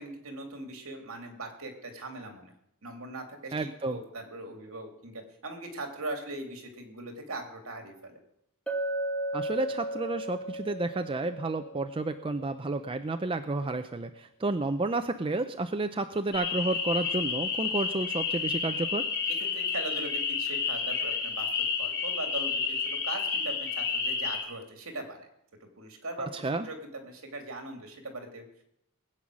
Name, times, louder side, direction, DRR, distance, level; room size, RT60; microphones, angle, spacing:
voice 1, 0.0-2.5 2.8-8.2 19.4-25.3 25.6-28.4, right 2 dB, 70° right, 3 dB, 2.8 m, -40 dB
voice 2, 3.5-4.0 9.3-19.1 26.3-26.7, right 2 dB, 25° right, 8 dB, 0.5 m, -31 dB
Chink clink, 8.7-12.7, right 1 dB, 5° left, 1.6 m, -35 dB
sound 1, 16.3-24.4, left 5 dB, 55° left, 5.1 m, -30 dB
20.0 x 8.7 x 6.2 m, 0.78 s
head